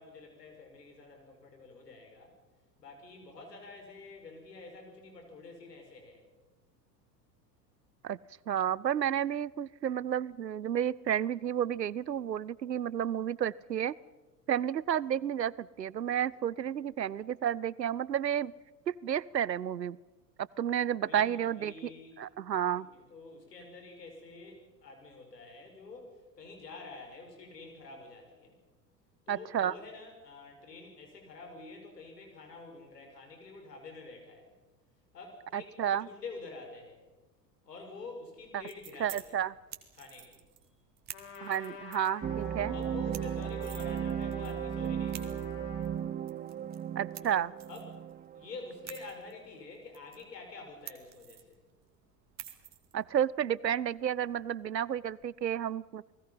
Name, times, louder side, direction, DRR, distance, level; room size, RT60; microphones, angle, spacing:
voice 1, 0.0-2.3 2.8-6.3 21.1-22.2 22.8-28.6 29.3-34.5 35.1-37.0 37.6-39.5 40.0-40.4 42.6-45.6 47.2-47.3 47.7-47.9 48.3-51.6, left 3 dB, 75° left, 3 dB, 5.8 m, -48 dB
voice 2, 8.5-14.0 14.5-18.5 18.9-20.0 20.4-21.9 22.2-22.9 29.3-29.7 35.5-36.1 38.5-38.6 39.0-39.5 41.4-42.7 47.0-47.5 52.9-56.0, right 9 dB, 85° right, 23 dB, 0.7 m, -31 dB
sound 1, 38.4-55.3, right 11 dB, 35° right, 2.4 m, -52 dB
Trumpet, 41.1-46.0, left 5 dB, 45° left, 5.0 m, -48 dB
sound 2, 42.2-49.0, right 9 dB, 20° right, 0.8 m, -36 dB
29.5 x 20.0 x 5.7 m, 1.2 s
figure-of-eight pair, 80°, 49 cm